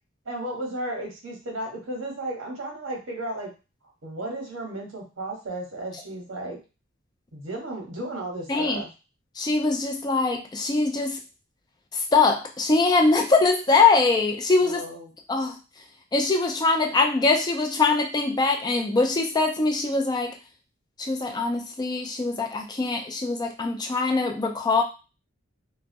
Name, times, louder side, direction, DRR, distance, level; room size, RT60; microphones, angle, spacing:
voice 1, 0.2-3.5 4.0-6.6 7.3-8.9 14.6-15.1, right 1 dB, 70° right, 0 dB, 0.9 m, -34 dB
voice 2, 8.5-8.8 9.4-11.2 11.9-14.8 15.3-15.6 16.1-20.3 21.0-24.8, left 3 dB, 20° left, 3 dB, 0.3 m, -22 dB
2.3 x 2.0 x 2.5 m, 0.31 s
head